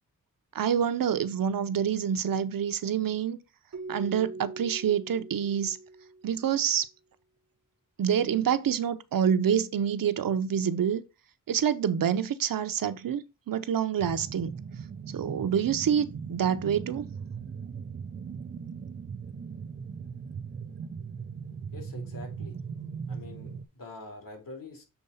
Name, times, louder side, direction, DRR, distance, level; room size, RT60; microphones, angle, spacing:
voice 1, 0.5-3.4 3.9-5.8 6.2-6.9 8.0-11.0 11.5-14.5 15.1-17.1, right 8 dB, 80° right, 0.7 m, -27 dB
Keyboard (musical), 3.7-6.6, right 3 dB, 55° right, 1.1 m, -42 dB
sound 1, 14.0-23.6, right 6 dB, 35° right, 0.5 m, -39 dB
voice 2, 21.7-22.5 23.1-24.8, left 2 dB, 75° left, 3.0 m, -45 dB
6.9 x 3.8 x 5.5 m
wide cardioid pair, 155°, 33 cm